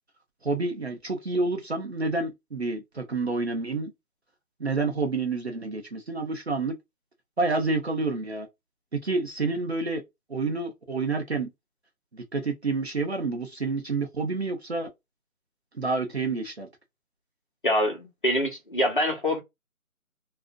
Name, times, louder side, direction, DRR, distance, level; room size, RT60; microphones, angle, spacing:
voice 1, 0.4-3.9 4.6-6.7 7.4-8.5 8.9-10.0 10.3-11.5 12.1-14.9 15.8-16.7, right 3 dB, 50° right, 0.6 m, -28 dB
voice 2, 17.6-19.4, left 1 dB, 35° left, 0.7 m, -25 dB
2.5 x 2.0 x 2.4 m
figure-of-eight pair, 165°, 43 cm